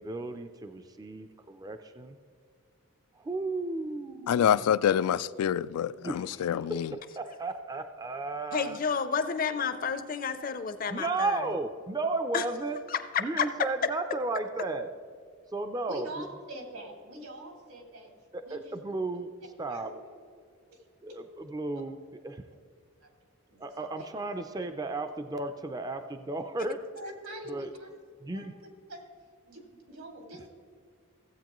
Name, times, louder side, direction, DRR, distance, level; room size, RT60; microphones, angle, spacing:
voice 1, 0.0-2.2 3.2-4.5 6.0-6.8 7.2-8.8 10.9-12.8 13.2-14.9 15.5-16.3 18.3-19.3 19.6-19.9 21.0-22.0 22.2-22.4 23.6-26.8 27.5-27.7 28.2-28.5, right 3 dB, 15° right, 0.4 m, -34 dB
voice 2, 4.3-6.9, left 9 dB, 90° left, 0.3 m, -26 dB
voice 3, 8.5-11.4 12.3-12.4 12.9-13.5, left 6 dB, 40° left, 0.5 m, -30 dB
voice 4, 15.9-18.1 18.4-18.8 19.7-20.0 20.7-20.8 21.1-21.2 23.0-24.1 26.9-27.9 28.3-29.0 29.4-30.5, right 1 dB, 85° right, 2.5 m, -45 dB
15.5 x 8.3 x 3.0 m
head